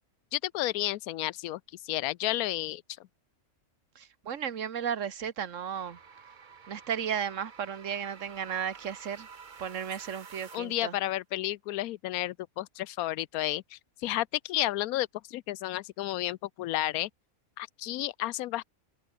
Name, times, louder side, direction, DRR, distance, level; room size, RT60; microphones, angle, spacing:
voice 1, 0.3-3.1 10.5-17.1 17.6-18.6, left 15 dB, 90° left, 1.1 m, -32 dB
voice 2, 3.9-6.0 6.7-9.3 9.6-11.0, right 8 dB, 60° right, 1.5 m, -34 dB
sound 1, 5.7-10.9, right 6 dB, 35° right, 1.1 m, -50 dB
omnidirectional pair, 1.5 m